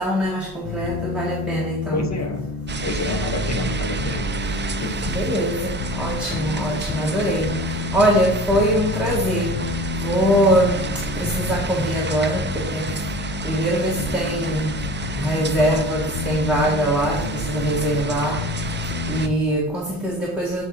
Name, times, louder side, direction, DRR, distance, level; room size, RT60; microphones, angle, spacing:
voice 1, 0.0-2.1 5.0-10.9 11.1-12.9 13.4-14.7 15.1-18.8 19.1-20.6, equal, ahead, -4 dB, 1.3 m, -22 dB
sound 1, 0.6-19.4, left 7 dB, 65° left, 0.7 m, -30 dB
voice 2, 1.9-2.5 2.8-5.1, left 2 dB, 35° left, 5 dB, 1.0 m, -29 dB
sound 2, 2.7-19.3, right 5 dB, 25° right, 0.3 m, -30 dB
7.7 x 4.1 x 6.1 m, 0.85 s
wide cardioid pair, 175°, 49 cm